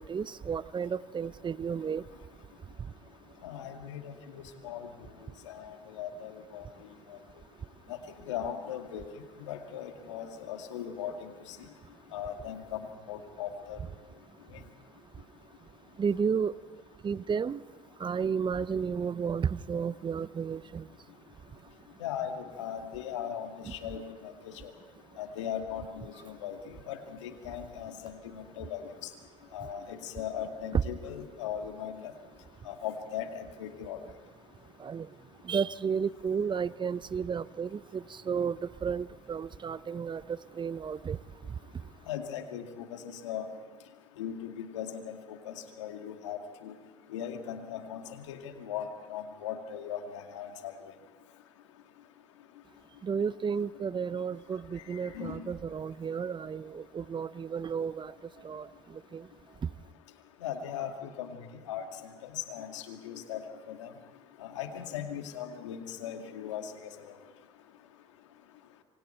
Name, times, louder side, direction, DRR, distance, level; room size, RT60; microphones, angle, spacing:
voice 1, 0.0-2.0 16.0-16.5 17.0-17.6 18.0-20.8 34.8-35.1 35.5-38.6 38.8-40.2 40.6-41.2 53.0-58.1 58.4-58.6 59.1-59.2, right 6 dB, 30° right, 18 dB, 0.7 m, -32 dB
voice 2, 3.4-4.8 5.5-6.6 7.9-8.0 8.2-9.0 9.5-11.3 12.1-13.8 22.0-24.0 25.2-28.8 29.5-32.1 32.7-34.0 42.1-43.5 44.2-46.7 47.1-50.7 55.1-55.4 60.4-60.9 61.2-61.8 62.2-63.4 63.7-63.9 64.4-66.7, left 9 dB, 85° left, 5 dB, 2.2 m, -38 dB
27.0 x 24.5 x 4.5 m, 1.4 s
hypercardioid pair, 65°, 15 cm